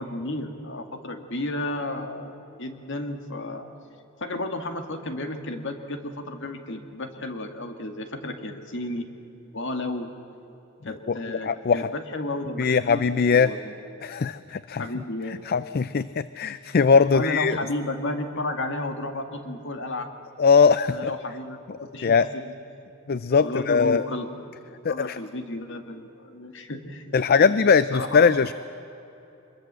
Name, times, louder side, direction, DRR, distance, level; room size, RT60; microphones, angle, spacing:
voice 1, 0.0-3.7 4.2-9.1 9.5-10.1 10.8-13.7 14.8-15.4 16.5-16.6 17.1-20.1 20.9-22.5 23.4-24.6 24.9-28.4, left 2 dB, 65° left, 6 dB, 2.1 m, -33 dB
voice 2, 11.4-11.8 12.6-13.5 14.0-14.8 15.5-17.6 20.4-21.1 22.0-22.3 23.1-24.0 24.8-25.2 27.1-28.5, left 5 dB, 50° left, 15 dB, 0.4 m, -20 dB
25.0 x 21.5 x 7.6 m, 3.0 s
head